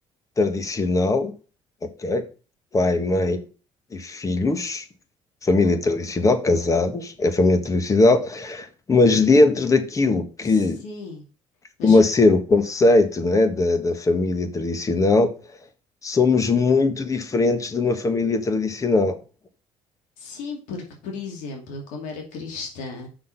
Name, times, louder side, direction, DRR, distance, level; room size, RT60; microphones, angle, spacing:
voice 1, 0.4-1.3 2.0-2.2 2.7-3.4 3.9-4.8 5.4-10.8 11.8-15.3 16.0-19.2, left 3 dB, 25° left, 8 dB, 1.5 m, -20 dB
voice 2, 10.4-11.2 11.8-12.0 20.2-23.1, left 4 dB, 90° left, 1 dB, 2.4 m, -35 dB
6.3 x 6.0 x 5.7 m, 0.35 s
cardioid pair, 115°, 13 cm